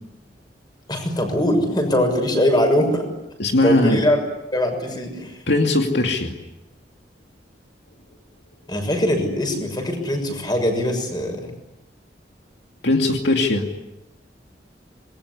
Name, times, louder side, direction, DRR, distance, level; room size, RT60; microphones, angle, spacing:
voice 1, 0.9-3.0 3.6-4.2 4.5-5.4 8.7-11.5, left 1 dB, 25° left, 5 dB, 6.6 m, -21 dB
voice 2, 3.4-4.0 5.5-6.3 12.8-13.7, left 2 dB, 75° left, 3 dB, 2.5 m, -19 dB
27.0 x 22.0 x 9.9 m, 0.93 s
head